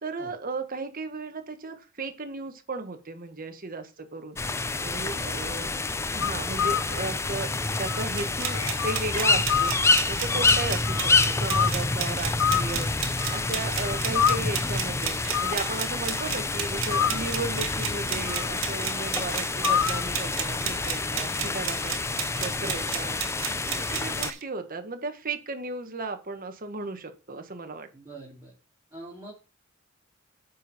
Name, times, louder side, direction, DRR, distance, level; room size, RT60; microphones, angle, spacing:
voice 1, 0.0-4.4 4.8-5.8 6.1-7.5 7.8-9.7 10.1-22.0 22.4-23.2 23.8-27.9, right 3 dB, 45° right, 7 dB, 1.3 m, -35 dB
sound 1, 4.4-24.3, left 3 dB, 15° left, 0.4 m, -28 dB
voice 2, 5.1-5.5 15.9-16.1 23.7-23.9 27.9-28.5 28.9-29.3, right 2 dB, 20° right, -5 dB, 2.6 m, -45 dB
sound 2, 6.2-7.0 7.9-9.0 9.5-9.9 10.4-11.7 12.4-12.9 13.2-13.6 13.8-14.4 15.3-15.7 16.2-16.3 16.9-17.3 18.3-18.6 19.0-19.1 19.6-20.1, left 8 dB, 85° left, 0.5 m, -27 dB
sound 3, 8.2-24.4, right 10 dB, 75° right, 1.0 m, -34 dB
9.2 x 4.4 x 5.5 m, 0.32 s
head